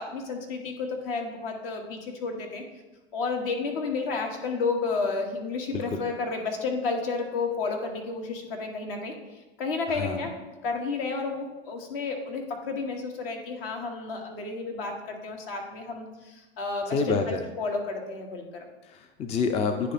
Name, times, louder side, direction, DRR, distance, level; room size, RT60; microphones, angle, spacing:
voice 1, 0.0-2.6 3.1-9.1 9.6-10.3 10.6-18.7, left 4 dB, 60° left, 3 dB, 1.4 m, -31 dB
voice 2, 9.9-10.3 16.9-17.4 18.9-19.9, left 4 dB, 20° left, 7 dB, 0.4 m, -28 dB
9.4 x 3.3 x 4.1 m, 1.1 s
figure-of-eight pair, 90°, 31 cm